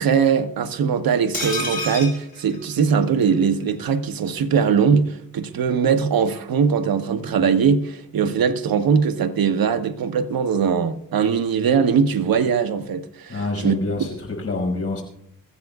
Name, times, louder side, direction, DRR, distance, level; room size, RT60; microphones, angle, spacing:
voice 1, 0.0-13.8, right 6 dB, 80° right, 1.0 m, -21 dB
sound 1, 1.3-3.3 3.6-3.7 4.0-4.1, left 2 dB, 25° left, 4.0 m, -29 dB
voice 2, 13.3-15.0, left 3 dB, 40° left, 5.6 m, -26 dB
25.5 x 14.5 x 2.3 m
wide cardioid pair, 125°, 35 cm